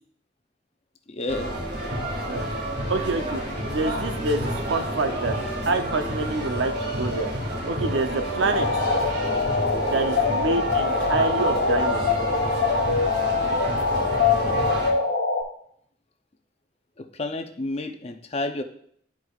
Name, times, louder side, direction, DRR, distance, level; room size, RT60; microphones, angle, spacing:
voice 1, 1.1-1.6 17.0-18.6, left 2 dB, 35° left, 7 dB, 0.5 m, -30 dB
sound 1, 1.3-14.9, equal, 60° right, 1.8 m, -29 dB
voice 2, 2.9-3.4 3.7-5.4 5.7-7.3 7.6-8.9 9.9-12.1, right 3 dB, 80° right, 7 dB, 0.6 m, -27 dB
sound 2, 8.5-15.4, left 4 dB, 75° left, 1.0 m, -24 dB
11.5 x 4.7 x 2.4 m, 0.66 s
head